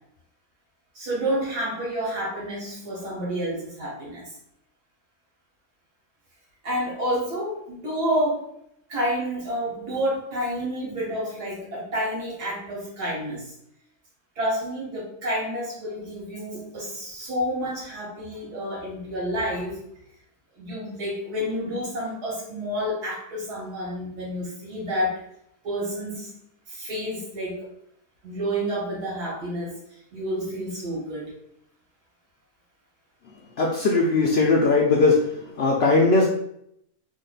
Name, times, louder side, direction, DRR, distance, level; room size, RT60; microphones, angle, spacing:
voice 1, 1.0-4.2 6.6-8.4 8.9-13.5 14.4-19.8 20.6-25.1 25.6-26.3 26.7-27.6 28.2-29.7 30.1-31.3, equal, 80° right, -6 dB, 2.0 m, -29 dB
voice 2, 33.6-35.3 35.6-36.3, left 3 dB, 90° left, -1 dB, 0.5 m, -19 dB
3.6 x 2.2 x 3.9 m, 0.73 s
omnidirectional pair, 1.6 m